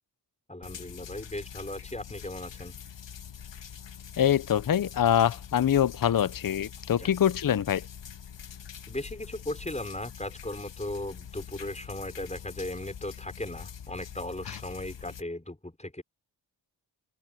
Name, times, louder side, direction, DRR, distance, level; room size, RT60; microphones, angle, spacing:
voice 1, 0.5-2.7 7.0-7.1 8.9-16.0, left 1 dB, 15° left, 5.7 m, -37 dB
sound 1, 0.6-15.2, left 8 dB, 75° left, 1.5 m, -44 dB
voice 2, 4.2-7.8, left 10 dB, 50° left, 0.8 m, -24 dB
open air
cardioid pair, 45°, 44 cm